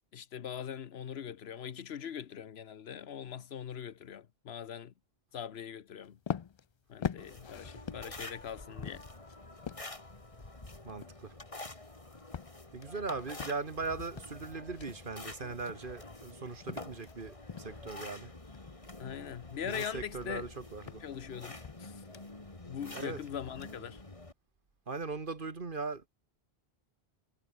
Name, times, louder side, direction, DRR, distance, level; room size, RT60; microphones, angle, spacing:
voice 1, 0.1-4.9 5.3-6.2 6.9-9.1 12.9-13.0 15.4-15.5 19.0-20.5 21.0-22.0 22.6-24.0, left 8 dB, 85° left, 1.1 m, -42 dB
sound 1, 6.0-17.2 17.5-17.9 18.3-22.6, left 7 dB, 50° left, 0.3 m, -44 dB
sound 2, 7.2-24.3, left 2 dB, 35° left, 2.4 m, -48 dB
voice 2, 10.8-11.3 12.7-18.3 19.6-21.0 22.9-23.2 24.9-26.1, right 4 dB, 55° right, 1.9 m, -39 dB
omnidirectional pair, 1.0 m